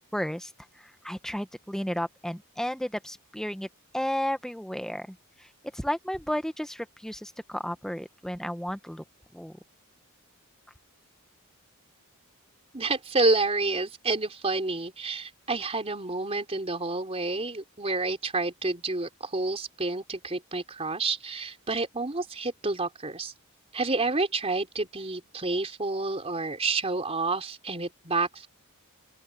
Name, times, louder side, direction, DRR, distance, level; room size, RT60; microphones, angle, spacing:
voice 1, 0.1-0.5 0.8-3.7 3.9-9.0 9.3-9.5, equal, ahead, 1.0 m, -33 dB
voice 2, 12.7-23.3 23.7-28.5, right 3 dB, 25° right, 3.7 m, -29 dB
open air
head